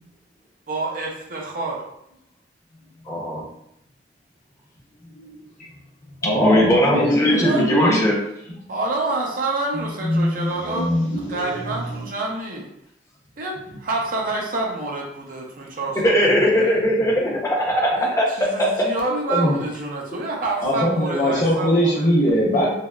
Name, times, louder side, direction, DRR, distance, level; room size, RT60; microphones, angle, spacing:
voice 1, 0.7-1.8 7.3-7.6 8.7-10.9 11.3-12.7 13.4-16.7 18.0-18.1 18.4-22.1, right 2 dB, 50° right, -1 dB, 0.5 m, -28 dB
voice 2, 3.0-3.4 6.4-8.2 16.0-18.9, equal, 15° left, -3 dB, 0.6 m, -19 dB
voice 3, 6.0-8.0 9.7-12.0 19.3-19.6 20.6-22.8, equal, 45° left, -5 dB, 0.9 m, -22 dB
3.4 x 2.0 x 2.3 m, 0.78 s
head